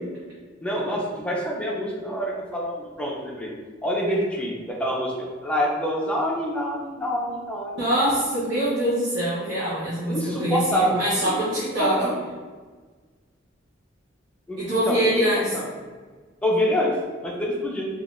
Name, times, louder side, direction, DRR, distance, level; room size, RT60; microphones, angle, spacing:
voice 1, 0.6-3.5 3.8-8.1 10.1-11.3 11.8-12.1 14.5-15.2 15.5-15.7 16.4-16.9 17.2-17.9, equal, 5° left, -3 dB, 0.4 m, -26 dB
voice 2, 7.8-12.1 14.6-15.5, right 1 dB, 70° right, -9 dB, 0.7 m, -24 dB
3.5 x 2.3 x 2.4 m, 1.4 s
head